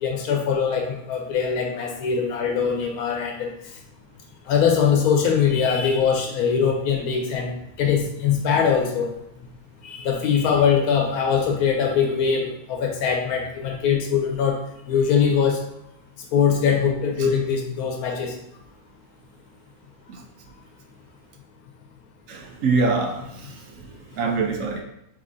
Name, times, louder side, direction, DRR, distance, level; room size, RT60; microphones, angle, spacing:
voice 1, 0.0-3.5 4.5-7.5 7.8-9.1 9.8-14.6 14.9-15.6 16.3-18.3, left 6 dB, 85° left, 2 dB, 1.1 m, -22 dB
voice 2, 22.3-23.9 24.2-24.8, right 4 dB, 70° right, 2 dB, 0.9 m, -24 dB
5.3 x 3.0 x 2.6 m, 0.81 s
omnidirectional pair, 1.5 m